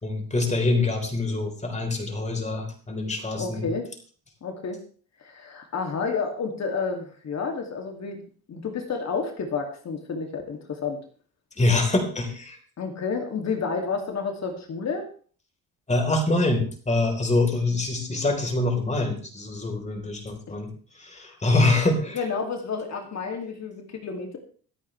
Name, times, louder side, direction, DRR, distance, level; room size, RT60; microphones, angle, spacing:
voice 1, 0.0-3.7 11.6-12.6 15.9-20.7 21.0-22.2, left 2 dB, 20° left, 3 dB, 4.0 m, -25 dB
voice 2, 3.4-3.9 4.4-4.8 5.2-8.2 8.5-11.0 12.8-15.1 22.1-24.4, left 5 dB, 50° left, 3 dB, 2.6 m, -30 dB
25.5 x 8.8 x 3.3 m, 0.42 s
cardioid pair, 105°, 35 cm